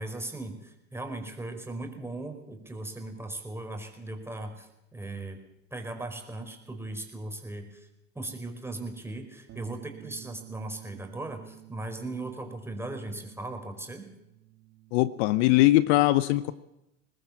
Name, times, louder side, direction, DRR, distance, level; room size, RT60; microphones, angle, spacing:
voice 1, 0.0-5.4 5.7-7.9 8.1-14.1, right 2 dB, 5° right, 4 dB, 4.9 m, -38 dB
Bass guitar, 9.5-15.7, right 13 dB, 45° right, 2.6 m, -51 dB
voice 2, 14.9-16.5, left 17 dB, 60° left, 16 dB, 0.9 m, -21 dB
22.5 x 19.5 x 7.4 m, 0.87 s
hypercardioid pair, 85°, 37 cm